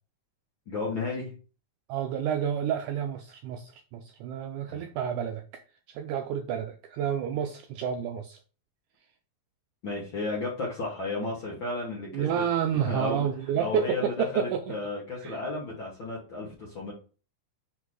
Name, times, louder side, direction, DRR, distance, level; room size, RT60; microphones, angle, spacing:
voice 1, 0.7-1.3 4.7-4.8 9.8-12.4 12.7-13.3 13.6-16.9, left 3 dB, 55° left, -4 dB, 1.4 m, -33 dB
voice 2, 1.9-5.4 5.9-8.4 12.1-14.7 15.2-15.4, right 8 dB, 80° right, 5 dB, 1.8 m, -30 dB
5.4 x 4.0 x 4.7 m, 0.36 s
omnidirectional pair, 4.1 m